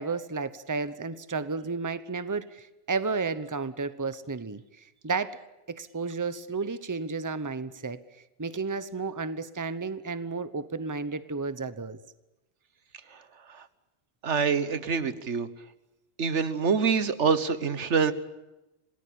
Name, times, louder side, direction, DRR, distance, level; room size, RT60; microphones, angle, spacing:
voice 1, 0.0-4.6 5.0-5.4 5.7-8.0 8.4-12.0, right 4 dB, 20° right, 14 dB, 0.9 m, -32 dB
voice 2, 14.2-15.5 16.2-18.1, right 5 dB, 90° right, 13 dB, 1.6 m, -25 dB
27.5 x 19.0 x 8.7 m, 1.0 s
omnidirectional pair, 1.2 m